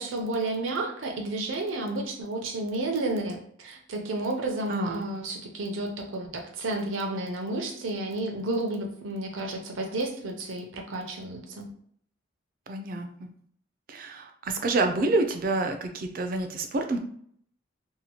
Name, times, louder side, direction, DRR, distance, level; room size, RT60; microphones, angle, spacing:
voice 1, 0.0-11.7, right 2 dB, 90° right, 2 dB, 0.6 m, -31 dB
voice 2, 4.7-5.0 12.7-13.3 13.9-17.0, right 2 dB, 45° right, 5 dB, 0.3 m, -28 dB
2.8 x 2.1 x 2.8 m, 0.63 s
head